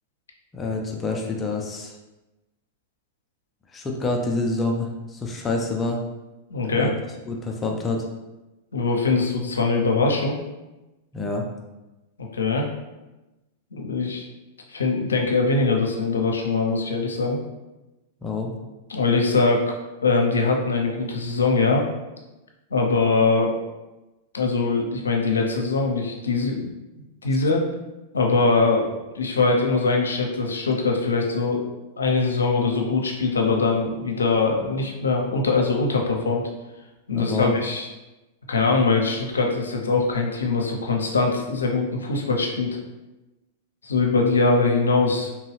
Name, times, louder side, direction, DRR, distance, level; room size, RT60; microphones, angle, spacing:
voice 1, 0.5-1.9 3.7-6.0 6.7-6.9 7.3-8.1 11.1-11.5 18.2-18.6 37.1-37.6, left 3 dB, 20° left, 1 dB, 0.5 m, -27 dB
voice 2, 6.5-6.9 8.7-10.4 12.3-12.7 13.7-14.2 14.7-17.4 18.9-19.8 20.0-21.9 22.7-23.5 24.3-26.7 27.2-27.6 28.1-28.9 29.1-31.6 32.0-36.4 37.1-37.9 38.5-42.7 43.8-45.3, left 3 dB, 85° left, 1 dB, 0.6 m, -22 dB
3.0 x 2.3 x 3.2 m, 1.0 s
hypercardioid pair, 105°, 0 cm